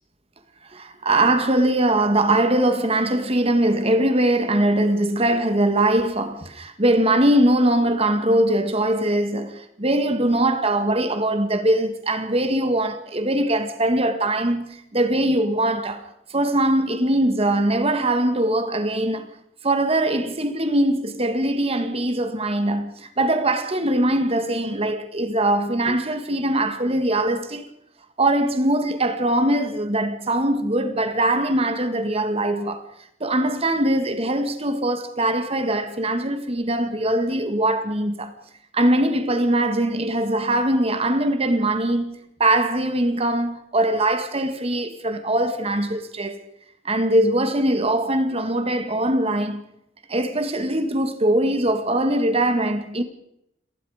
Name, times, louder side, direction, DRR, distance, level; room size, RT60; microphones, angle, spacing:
voice 1, 0.7-16.0 16.3-19.3 19.6-27.7 28.2-32.8 33.2-38.3 38.7-46.4 46.8-49.6 50.1-53.0, right 1 dB, 35° right, 1.9 m, -21 dB
29.0 x 19.0 x 5.1 m
head